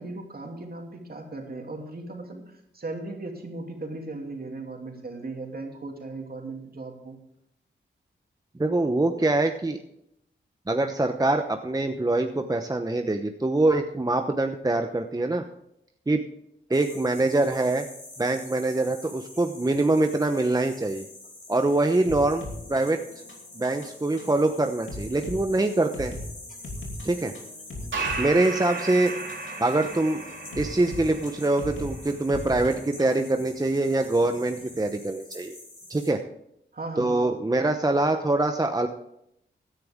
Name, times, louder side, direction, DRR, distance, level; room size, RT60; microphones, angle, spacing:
voice 1, 0.0-7.2 36.7-37.3, right 2 dB, 50° right, 2 dB, 2.9 m, -37 dB
voice 2, 8.5-9.8 10.7-15.4 16.1-16.2 16.7-17.8 18.2-21.0 21.5-23.0 23.5-26.1 27.0-27.3 28.2-29.1 29.6-30.2 30.6-35.6 35.9-36.2 37.0-38.9, right 2 dB, 20° right, 5 dB, 0.9 m, -24 dB
sound 1, 16.7-36.1, left 2 dB, 40° left, 4.4 m, -46 dB
sound 2, 22.1-33.3, left 1 dB, 80° left, 3.0 m, -40 dB
sound 3, 27.9-34.9, right 3 dB, 75° right, 3.0 m, -37 dB
16.5 x 10.0 x 3.6 m, 0.77 s
cardioid pair, 60°, 20 cm